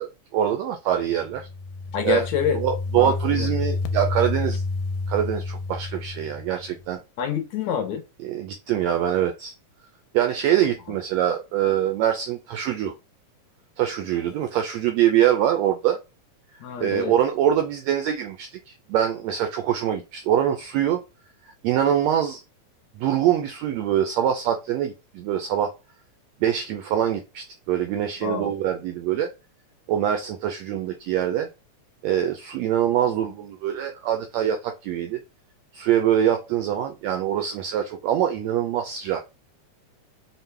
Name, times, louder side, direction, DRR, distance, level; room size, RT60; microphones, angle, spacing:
voice 1, 0.0-1.4 2.0-2.2 2.5-4.6 5.1-7.0 8.2-9.5 10.1-12.9 13.8-16.0 16.8-21.0 21.6-22.4 23.0-25.7 26.4-29.3 29.9-31.5 32.0-35.2 35.7-39.2, right 10 dB, 90° right, 1.5 m, -24 dB
sound 1, 1.2-6.9, left 3 dB, 90° left, 2.1 m, -29 dB
voice 2, 1.9-2.6 2.9-3.5 7.2-8.0 16.6-17.1 28.2-28.5, left 7 dB, 70° left, 1.8 m, -27 dB
5.6 x 2.1 x 3.2 m
omnidirectional pair, 3.6 m